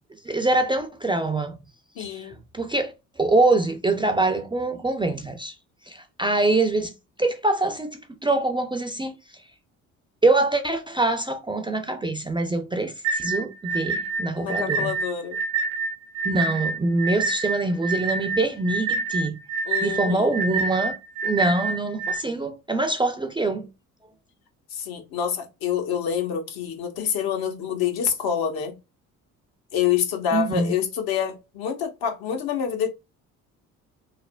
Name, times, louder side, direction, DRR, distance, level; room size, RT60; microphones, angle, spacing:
voice 1, 0.2-1.6 2.0-5.5 5.9-6.9 7.2-9.1 10.2-14.9 16.2-19.4 19.8-20.9 21.2-23.7 30.3-30.7, right 2 dB, 15° right, 0.4 m, -24 dB
voice 2, 2.0-2.4 14.4-15.4 19.7-20.2 24.7-28.7 29.7-32.9, left 8 dB, 65° left, 0.9 m, -27 dB
sound 1, 13.0-22.2, right 4 dB, 80° right, 0.5 m, -27 dB
3.2 x 2.0 x 2.2 m
hypercardioid pair, 55°, 39 cm